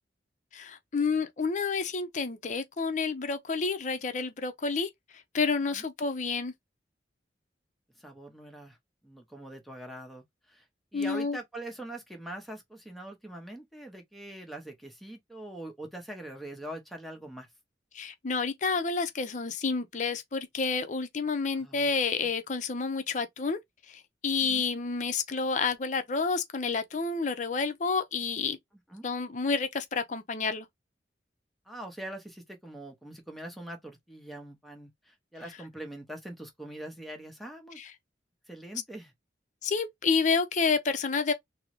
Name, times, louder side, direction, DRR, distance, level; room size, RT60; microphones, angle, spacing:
voice 1, 0.5-4.9 5.3-6.5 10.9-11.4 17.9-23.6 23.9-28.6 29.0-30.7 37.8-37.9 39.6-41.3, left 4 dB, 40° left, 0.5 m, -29 dB
voice 2, 8.0-8.8 9.0-10.7 10.9-17.5 21.5-22.3 24.4-24.7 28.9-29.0 31.7-37.8 38.5-39.1, right 1 dB, ahead, 0.7 m, -43 dB
3.7 x 2.0 x 2.9 m
head